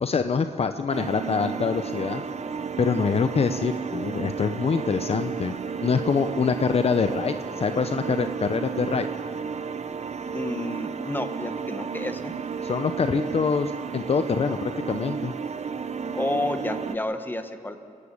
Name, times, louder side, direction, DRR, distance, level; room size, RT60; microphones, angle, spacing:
voice 1, 0.0-2.2 2.8-5.5 5.8-9.1 12.6-15.3, left 5 dB, 50° left, 9 dB, 0.8 m, -25 dB
sound 1, 0.9-17.0, right 6 dB, 55° right, 1.0 m, -32 dB
voice 2, 10.3-12.3 16.1-17.8, left 2 dB, 15° left, 7 dB, 1.5 m, -30 dB
28.5 x 11.5 x 8.6 m, 2.3 s
cardioid pair, 85°, 14 cm